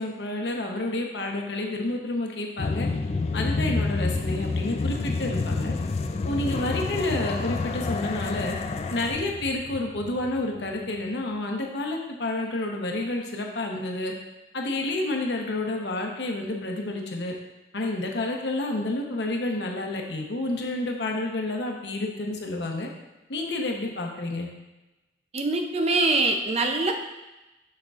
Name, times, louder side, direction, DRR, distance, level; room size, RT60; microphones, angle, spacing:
voice 1, 0.0-2.9 3.3-5.7 6.2-8.6 8.9-14.1 14.5-17.3 17.7-22.9 23.3-24.5, left 2 dB, 75° left, 1 dB, 0.9 m, -29 dB
sound 1, 2.6-10.7, left 3 dB, 35° left, 0.3 m, -29 dB
voice 2, 25.3-26.9, right 2 dB, 35° right, 4 dB, 0.5 m, -23 dB
6.6 x 6.4 x 2.4 m, 1.0 s
head